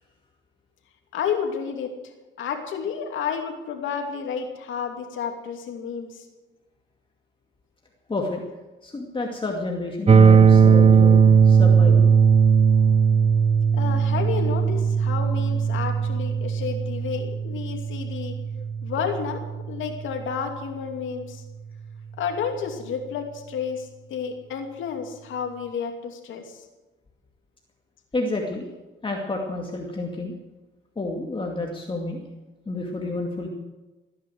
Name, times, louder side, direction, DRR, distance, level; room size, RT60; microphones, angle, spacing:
voice 1, 1.1-1.9 2.4-6.2 13.7-18.3 18.8-19.4 19.7-21.4 22.2-26.6, left 6 dB, 80° left, 3 dB, 2.8 m, -31 dB
voice 2, 8.1-8.4 8.8-12.1 18.6-18.7 28.1-28.7 29.0-30.3 31.0-32.2 32.7-33.5, left 2 dB, 25° left, 0 dB, 2.3 m, -30 dB
sound 1, 10.1-20.0, right 6 dB, 30° right, 0.8 m, -18 dB
17.0 x 10.0 x 7.9 m, 1.2 s
cardioid pair, 90°, 20 cm